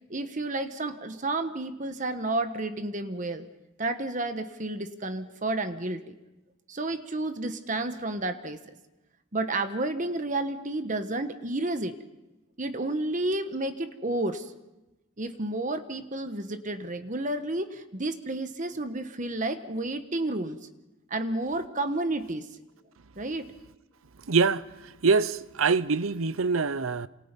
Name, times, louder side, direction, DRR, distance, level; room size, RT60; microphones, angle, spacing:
voice 1, 0.1-3.5 3.8-6.1 6.7-8.6 9.3-12.0 12.6-14.5 15.2-20.6 21.1-22.5 23.2-23.5, right 2 dB, 35° right, 1.2 m, -31 dB
voice 2, 24.3-27.1, right 4 dB, 80° right, 0.7 m, -25 dB
28.5 x 26.5 x 5.3 m
head